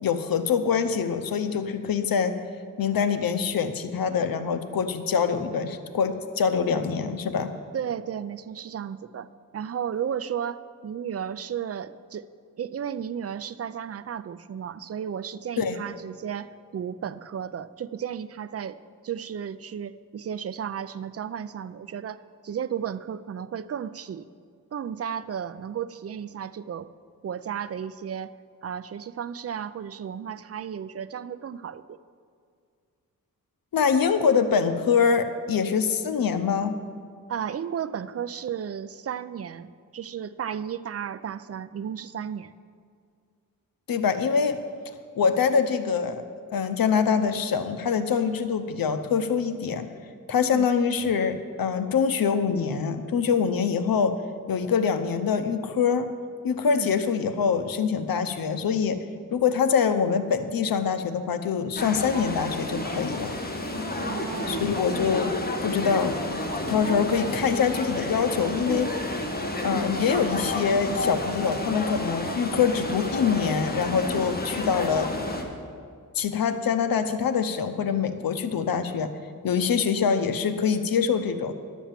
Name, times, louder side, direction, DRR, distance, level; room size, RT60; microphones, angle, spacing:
voice 1, 0.0-2.4 2.8-7.5 15.6-15.8 33.7-36.7 43.9-44.6 45.2-46.2 46.5-49.9 50.3-54.2 54.5-56.1 56.4-59.0 59.3-63.3 64.5-65.3 65.6-66.4 66.7-68.9 69.6-75.1 76.1-79.1 79.4-81.5, left 6 dB, 90° left, 10 dB, 0.7 m, -24 dB
voice 2, 7.7-9.3 9.5-12.3 12.6-18.8 19.0-24.3 24.7-26.9 27.2-28.3 28.6-32.0 37.3-42.5 50.4-50.7 56.6-56.9 64.0-64.7, right 8 dB, 45° right, 14 dB, 0.4 m, -34 dB
sound 1, 61.8-75.4, left 1 dB, 25° left, 1.4 m, -30 dB
11.5 x 7.2 x 7.3 m, 2.2 s
wide cardioid pair, 105°, 34 cm